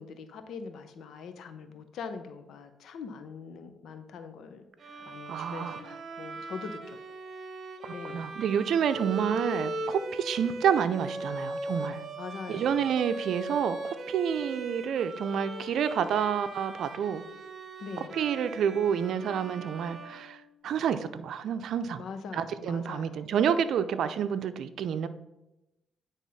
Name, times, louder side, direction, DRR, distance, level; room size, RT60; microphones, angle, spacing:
voice 1, 0.0-4.6 5.1-7.0 7.9-8.4 12.2-12.9 17.8-18.2 22.0-23.3, left 5 dB, 70° left, 8 dB, 0.8 m, -42 dB
Bowed string instrument, 4.8-20.8, right 2 dB, 45° right, 1.1 m, -39 dB
voice 2, 5.3-5.8 7.8-12.0 12.5-17.2 18.1-20.4 20.6-22.0 22.3-25.1, right 8 dB, 70° right, 11 dB, 0.5 m, -29 dB
9.3 x 3.6 x 5.5 m, 0.95 s
cardioid pair, 90°, 0 cm